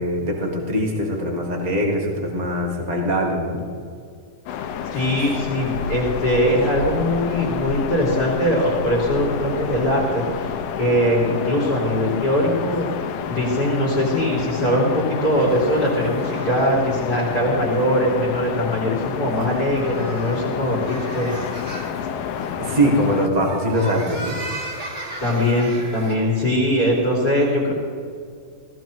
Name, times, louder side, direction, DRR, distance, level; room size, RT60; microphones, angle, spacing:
voice 1, 0.0-3.7 22.6-24.4, equal, 75° right, 0 dB, 0.4 m, -22 dB
sound 1, 4.5-23.3, left 7 dB, 80° left, 2.3 m, -29 dB
voice 2, 4.9-10.5 10.8-12.9 13.3-21.3 25.2-27.7, equal, 30° left, -4 dB, 2.6 m, -21 dB
sound 2, 15.3-26.2, right 1 dB, 35° right, 2.7 m, -37 dB
17.5 x 15.0 x 3.1 m, 2.2 s
omnidirectional pair, 4.1 m